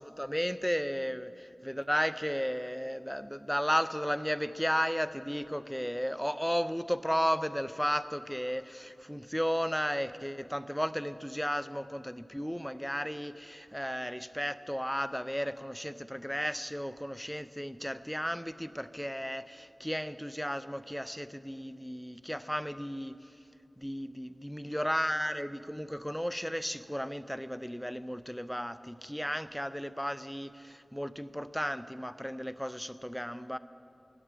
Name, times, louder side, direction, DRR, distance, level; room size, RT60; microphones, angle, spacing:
voice 1, 0.0-23.4 23.8-33.6, equal, ahead, 14 dB, 0.4 m, -34 dB
16.5 x 6.2 x 9.1 m, 2.5 s
wide cardioid pair, 70°, 0 cm